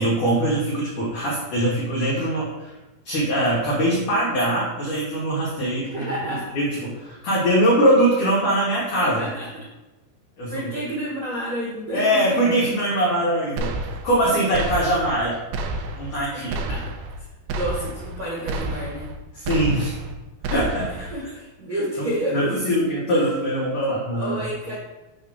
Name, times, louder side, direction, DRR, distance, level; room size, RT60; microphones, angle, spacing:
voice 1, 0.0-2.7 3.1-6.1 6.5-9.3 10.4-10.7 11.9-13.7 14.0-15.4 15.9-16.5 19.4-20.0 20.5-21.1 22.0-24.4, right 1 dB, 85° left, -6 dB, 1.7 m, -22 dB
voice 2, 5.8-6.5 9.1-9.6 10.5-12.4 16.3-16.9 17.2-19.1 20.9-22.5 23.1-23.3 24.2-24.8, equal, 65° right, -7 dB, 1.7 m, -30 dB
sound 1, 13.6-14.2 14.5-15.2 15.5-16.2 16.5-17.2 17.5-18.2 18.5-19.2 19.5-20.1 20.4-21.1, right 2 dB, 90° right, 2.7 m, -30 dB
8.7 x 3.1 x 5.9 m, 1.1 s
omnidirectional pair, 5.9 m